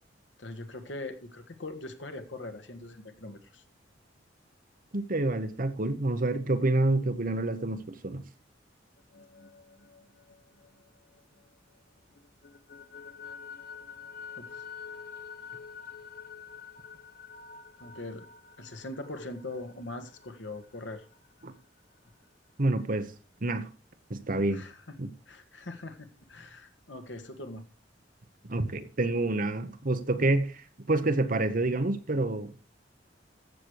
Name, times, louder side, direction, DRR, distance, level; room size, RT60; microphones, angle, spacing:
voice 1, 0.4-3.6 14.4-14.5 17.8-18.3 18.6-21.1 24.5-25.0 25.3-27.6, left 2 dB, 75° left, 1.6 m, -41 dB
voice 2, 4.9-8.2 21.4-21.5 22.6-23.1 23.4-23.7 24.1-24.6 25.0-25.1 28.4-32.5, right 2 dB, 50° right, 1.1 m, -28 dB
sound 1, 9.0-11.8 12.2-21.6, left 6 dB, 55° left, 0.9 m, -48 dB
14.5 x 6.9 x 4.7 m
head